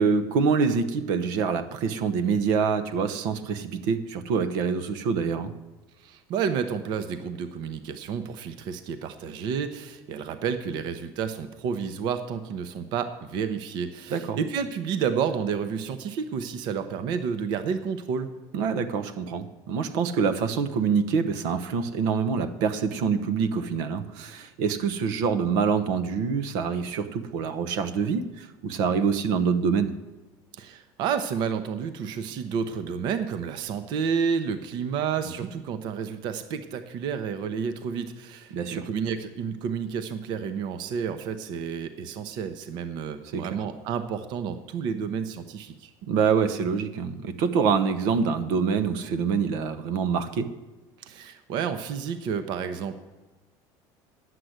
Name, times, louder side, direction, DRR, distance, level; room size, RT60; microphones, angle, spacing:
voice 1, 0.0-5.5 14.1-14.4 18.5-29.9 38.5-38.9 43.3-43.4 46.1-50.5, right 6 dB, 80° right, 9 dB, 0.9 m, -25 dB
voice 2, 6.0-18.3 30.5-45.9 51.0-53.0, right 6 dB, 55° right, 10 dB, 0.8 m, -30 dB
10.0 x 7.7 x 7.9 m, 1.1 s
cardioid pair, 150°, 9 cm